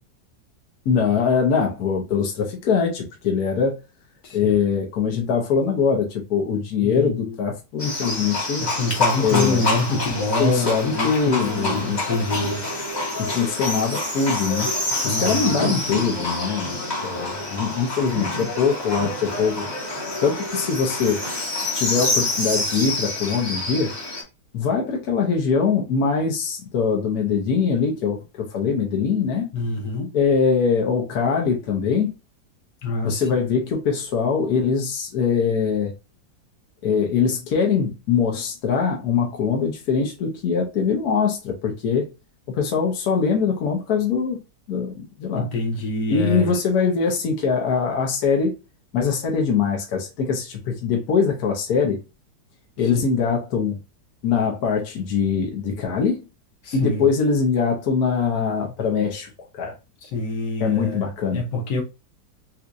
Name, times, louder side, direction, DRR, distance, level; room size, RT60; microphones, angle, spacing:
voice 1, 0.8-3.8 4.3-8.6 9.2-9.6 9.9-10.0 10.4-12.2 13.2-14.7 15.0-16.8 17.0-19.6 20.2-21.2 21.7-23.9 24.5-29.5 30.1-32.1 33.0-35.9 36.8-42.1 42.5-44.4 44.7-45.5 46.1-48.5 48.9-52.0 52.8-53.8 54.2-56.2 56.7-59.7 60.6-61.4, left 6 dB, 65° left, 1.4 m, -22 dB
voice 2, 4.2-4.5 6.8-7.3 8.6-12.6 15.0-15.5 29.5-30.1 32.8-33.2 45.3-46.5 52.9-53.0 56.6-57.1 60.0-61.1 61.3-61.8, left 2 dB, 80° left, 1.6 m, -26 dB
Livestock farm animals working animals, 7.8-24.2, left 2 dB, 30° left, 1.0 m, -27 dB
4.3 x 2.4 x 2.5 m
omnidirectional pair, 1.8 m